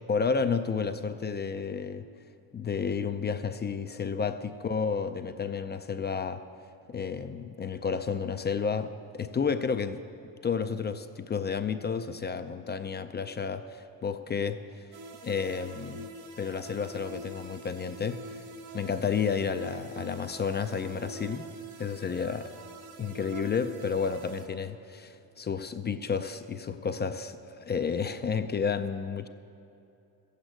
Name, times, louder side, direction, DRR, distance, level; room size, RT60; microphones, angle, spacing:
voice 1, 0.1-2.1 2.5-6.4 6.9-10.0 10.4-14.6 15.2-16.1 16.4-18.4 18.7-21.5 21.8-22.5 23.0-29.3, left 6 dB, 25° left, 9 dB, 0.4 m, -31 dB
sound 1, 14.9-24.5, right 2 dB, 60° right, 1.5 m, -45 dB
13.5 x 8.1 x 8.8 m, 2.7 s
cardioid pair, 115°, 44 cm